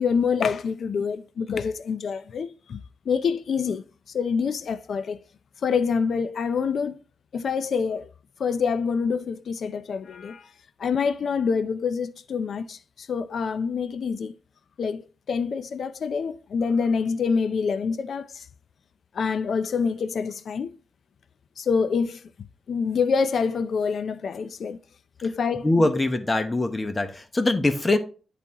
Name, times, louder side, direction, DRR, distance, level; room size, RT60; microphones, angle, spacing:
voice 1, 0.0-5.2 5.6-7.0 7.3-8.1 8.4-10.5 10.8-14.3 14.8-18.5 19.1-20.8 21.6-22.2 22.7-24.8 25.2-25.9, left 5 dB, 70° left, 0.4 m, -26 dB
voice 2, 25.6-28.0, left 2 dB, 25° left, 1.1 m, -23 dB
10.5 x 4.1 x 2.9 m
cardioid pair, 80°, 0 cm